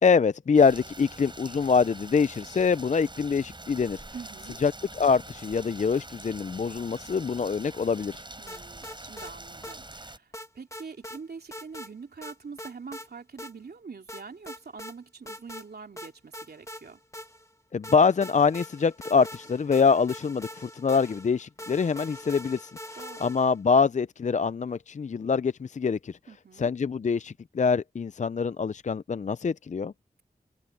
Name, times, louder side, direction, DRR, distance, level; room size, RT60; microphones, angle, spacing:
voice 1, 0.0-4.0 4.6-8.2 17.7-22.7 23.2-26.2 26.6-29.9, left 5 dB, 50° left, 0.4 m, -24 dB
Rain, 0.5-10.2, right 2 dB, 30° right, 4.0 m, -44 dB
voice 2, 4.1-4.6 8.4-17.0 22.9-23.3 26.3-26.7, right 5 dB, 80° right, 3.2 m, -44 dB
sound 1, 8.5-9.3 9.6-9.8 10.3-11.2 11.5-11.9 12.2-13.1 13.4-13.5 14.1-14.9 15.3-15.7 16.0-17.5 17.8-23.6, left 1 dB, 20° left, 2.2 m, -43 dB
cardioid pair, 45°, 16 cm